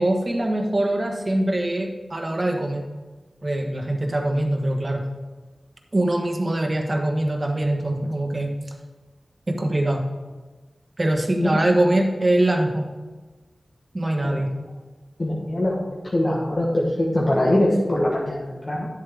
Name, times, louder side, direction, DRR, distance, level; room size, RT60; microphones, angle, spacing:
voice 1, 0.0-2.8 3.4-5.0 5.9-8.5 9.5-10.0 11.0-12.8 13.9-14.5, right 1 dB, 35° right, 3 dB, 1.3 m, -23 dB
voice 2, 15.2-18.9, left 1 dB, 40° left, -4 dB, 1.3 m, -23 dB
10.0 x 7.4 x 3.5 m, 1.3 s
wide cardioid pair, 80°, 0 cm